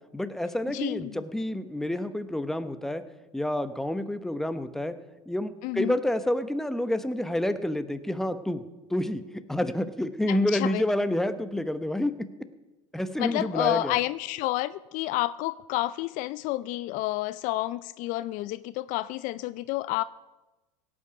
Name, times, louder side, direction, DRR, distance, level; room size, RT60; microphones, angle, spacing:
voice 1, 0.1-3.0 3.3-5.0 5.3-12.3 12.9-14.0, left 1 dB, ahead, 10 dB, 0.9 m, -29 dB
voice 2, 0.7-1.0 5.6-5.9 10.3-10.8 13.2-20.0, left 17 dB, 55° left, 17 dB, 0.4 m, -30 dB
17.5 x 8.8 x 5.7 m, 1.1 s
hypercardioid pair, 100°, 16 cm